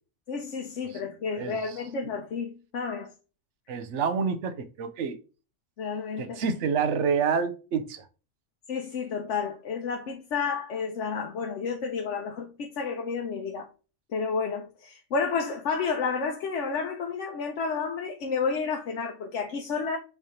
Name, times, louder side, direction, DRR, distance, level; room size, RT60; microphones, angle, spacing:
voice 1, 0.3-3.1 5.8-6.4 8.7-13.7 14.1-20.0, left 5 dB, 70° left, 1.1 m, -31 dB
voice 2, 1.4-1.7 3.7-5.2 6.2-8.1, right 6 dB, 70° right, 1.0 m, -28 dB
5.6 x 3.3 x 2.9 m
omnidirectional pair, 1.3 m